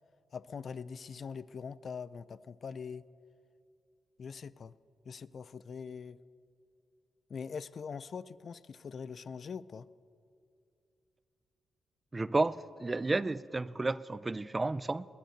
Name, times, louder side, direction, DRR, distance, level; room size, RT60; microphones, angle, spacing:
voice 1, 0.3-3.0 4.2-4.7 5.1-6.2 7.3-9.9, left 6 dB, 60° left, 0.4 m, -43 dB
voice 2, 12.1-15.1, right 2 dB, 30° right, 0.5 m, -32 dB
19.0 x 10.0 x 6.6 m
supercardioid pair, 55°, 0 cm